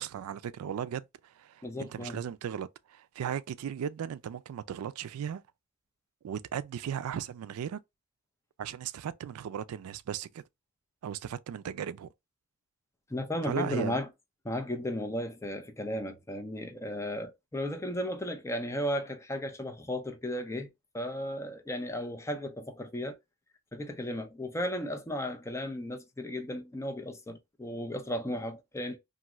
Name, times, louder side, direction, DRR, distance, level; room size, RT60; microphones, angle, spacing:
voice 1, 0.0-5.4 6.2-7.8 8.6-10.4 11.0-12.1 13.4-14.0, right 8 dB, 80° right, 0.3 m, -36 dB
voice 2, 1.6-2.2 13.1-14.1 14.4-20.7 20.9-23.2 23.7-29.0, left 1 dB, 15° left, 0.5 m, -35 dB
2.6 x 2.4 x 3.0 m
head